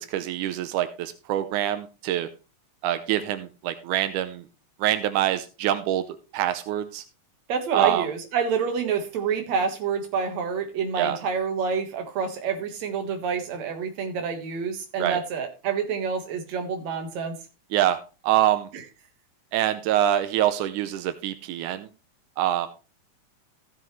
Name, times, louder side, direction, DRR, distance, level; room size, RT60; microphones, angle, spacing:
voice 1, 0.0-2.3 2.8-4.4 4.8-6.1 6.3-7.0 7.7-8.1 11.0-11.2 15.0-15.2 17.7-18.0 18.2-18.7 19.5-21.9 22.4-22.7, right 12 dB, 90° right, 10 dB, 2.2 m, -25 dB
voice 2, 7.5-17.4 18.7-18.8, right 6 dB, 65° right, 5 dB, 2.8 m, -28 dB
15.0 x 7.2 x 3.2 m, 0.31 s
omnidirectional pair, 3.5 m